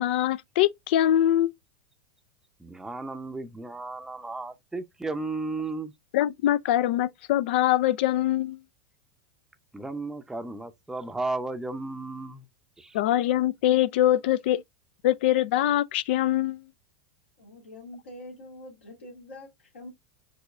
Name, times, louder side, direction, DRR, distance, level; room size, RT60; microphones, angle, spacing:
voice 1, 0.0-1.5 6.1-8.6 12.9-14.6 15.0-16.6, left 13 dB, 60° left, 0.3 m, -23 dB
voice 2, 2.6-5.9 9.7-12.4 12.8-13.0, right 3 dB, 5° right, 0.6 m, -34 dB
voice 3, 17.4-19.9, left 1 dB, 80° left, 2.4 m, -45 dB
5.2 x 3.0 x 2.4 m
hypercardioid pair, 90°, 6 cm